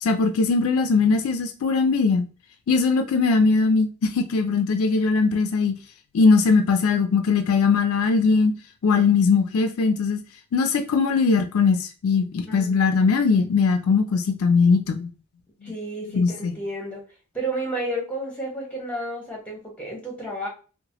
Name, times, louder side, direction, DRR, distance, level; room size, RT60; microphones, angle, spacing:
voice 1, 0.0-2.3 2.7-5.7 6.1-8.5 8.8-10.2 10.5-15.1 15.6-15.7 16.0-16.6, left 4 dB, 75° left, 0.4 m, -20 dB
voice 2, 12.4-12.9 15.6-17.0 17.3-20.5, right 1 dB, 5° left, 1.1 m, -31 dB
3.0 x 2.1 x 2.8 m
head